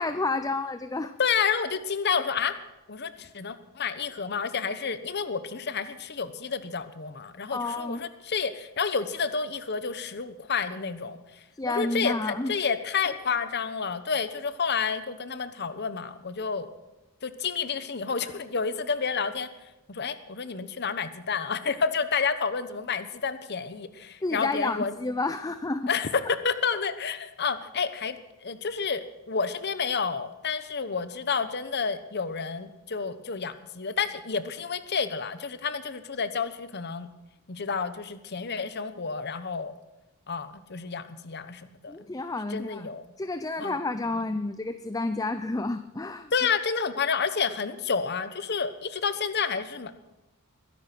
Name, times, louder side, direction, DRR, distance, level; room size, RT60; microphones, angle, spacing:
voice 1, 0.0-1.1 7.5-8.0 11.6-12.5 24.2-25.9 41.9-42.9 43.2-46.3, left 2 dB, 15° left, 10 dB, 0.5 m, -30 dB
voice 2, 1.2-2.6 2.9-11.2 11.7-16.7 17.2-19.5 19.9-24.9 25.9-28.2 28.4-37.1 37.5-39.7 40.3-41.9 42.5-43.0 43.6-43.8 46.3-50.0, left 5 dB, 50° left, 12 dB, 1.0 m, -30 dB
22.0 x 10.5 x 6.0 m, 1.0 s
head